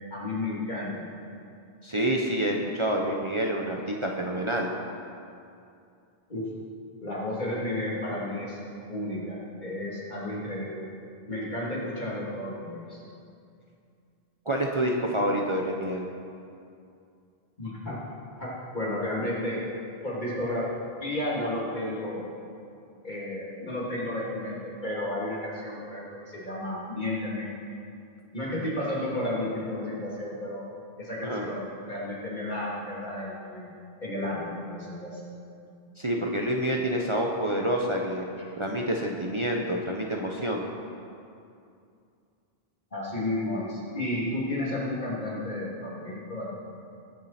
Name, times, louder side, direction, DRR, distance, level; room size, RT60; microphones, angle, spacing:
voice 1, 0.1-1.0 6.3-6.4 7.0-8.6 8.9-10.8 11.3-13.0 17.6-18.0 18.4-19.6 20.0-20.7 21.0-22.3 23.0-27.5 28.3-30.7 31.0-33.7 34.0-35.2 42.9-46.5, left 1 dB, 45° left, -6 dB, 3.2 m, -32 dB
voice 2, 1.8-4.7 14.5-16.1 31.2-31.5 36.0-38.3 38.6-40.7, right 1 dB, 30° right, -1 dB, 0.9 m, -28 dB
21.0 x 7.5 x 4.4 m, 2.5 s
omnidirectional pair, 1.0 m